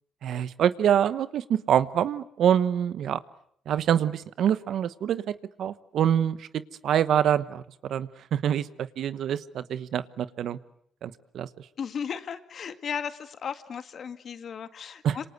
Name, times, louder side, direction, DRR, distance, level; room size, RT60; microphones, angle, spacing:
voice 1, 0.2-3.2 3.7-6.5 6.8-10.6 11.0-11.5 15.0-15.2, right 9 dB, 70° right, 15 dB, 1.1 m, -25 dB
voice 2, 11.8-15.3, left 7 dB, 55° left, 10 dB, 2.0 m, -35 dB
27.0 x 26.0 x 8.2 m, 0.67 s
cardioid pair, 90°, 0 cm